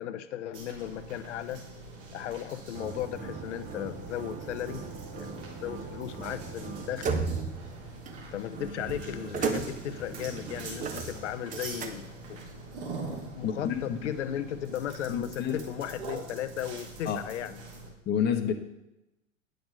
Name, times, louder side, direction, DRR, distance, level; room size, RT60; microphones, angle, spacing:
voice 1, 0.0-1.6 2.1-4.8 5.1-7.1 8.3-12.4 13.4-17.6, left 10 dB, 65° left, 11 dB, 0.8 m, -36 dB
sound 1, 0.5-17.9, right 2 dB, 60° right, 3.2 m, -44 dB
sound 2, 2.7-12.4, right 5 dB, 20° right, 0.8 m, -37 dB
voice 2, 13.4-14.0 15.1-15.7 17.1-17.2 18.1-18.5, left 8 dB, 25° left, 5 dB, 1.0 m, -29 dB
9.1 x 6.7 x 5.4 m, 0.93 s
figure-of-eight pair, 95°, 38 cm